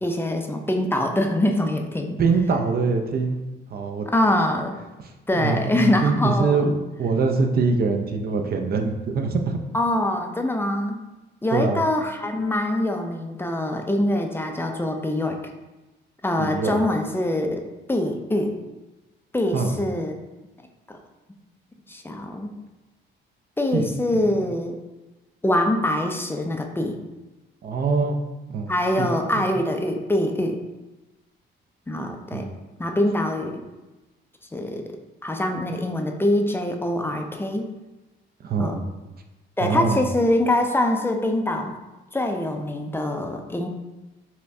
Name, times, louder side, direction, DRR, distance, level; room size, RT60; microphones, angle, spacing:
voice 1, 0.0-2.2 4.1-4.7 5.3-6.7 9.7-11.0 11.4-15.4 16.2-18.6 19.3-20.1 20.9-21.0 21.9-22.5 23.6-24.8 25.4-27.0 28.7-30.6 31.9-32.5 32.8-33.7 34.5-34.9 35.2-37.7 38.6-38.8 39.6-41.8 42.1-43.7, left 1 dB, 10° left, 3 dB, 0.4 m, -24 dB
voice 2, 2.2-3.4 3.7-4.1 5.3-9.6 11.5-11.8 16.4-16.8 19.5-19.7 23.7-24.2 27.6-28.2 28.5-28.7 29.0-29.1 29.4-29.5 32.3-32.5 38.4-38.8 39.6-40.0, right 4 dB, 50° right, 4 dB, 0.5 m, -23 dB
5.5 x 2.1 x 2.6 m, 1.1 s
cardioid pair, 90°, 20 cm